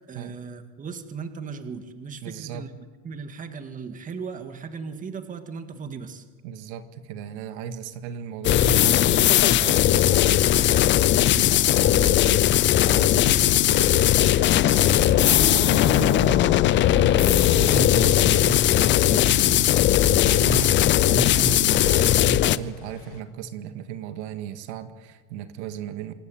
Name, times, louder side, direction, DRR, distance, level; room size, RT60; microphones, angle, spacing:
voice 1, 0.1-2.8 3.0-6.2, right 5 dB, 25° right, 8 dB, 1.9 m, -37 dB
voice 2, 2.2-2.7 6.4-26.1, right 7 dB, 85° right, 9 dB, 2.0 m, -35 dB
sound 1, 8.4-22.6, left 13 dB, 35° left, 0.6 m, -19 dB
Thunder / Rain, 13.4-23.2, left 6 dB, 75° left, 2.8 m, -33 dB
26.5 x 15.0 x 9.2 m, 1.3 s
cardioid pair, 145°, 34 cm